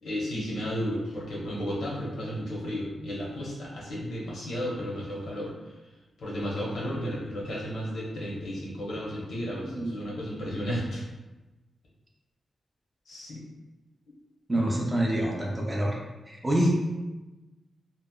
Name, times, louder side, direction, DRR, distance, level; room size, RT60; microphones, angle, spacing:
voice 1, 0.0-5.5 6.2-11.0 13.1-13.4 14.5-14.7 16.6-16.7, equal, 65° left, -4 dB, 0.7 m, -33 dB
voice 2, 9.6-9.9 14.5-16.0 16.3-16.7, right 1 dB, 15° right, -2 dB, 0.3 m, -26 dB
2.8 x 2.0 x 2.2 m, 1.1 s
wide cardioid pair, 170°, 0 cm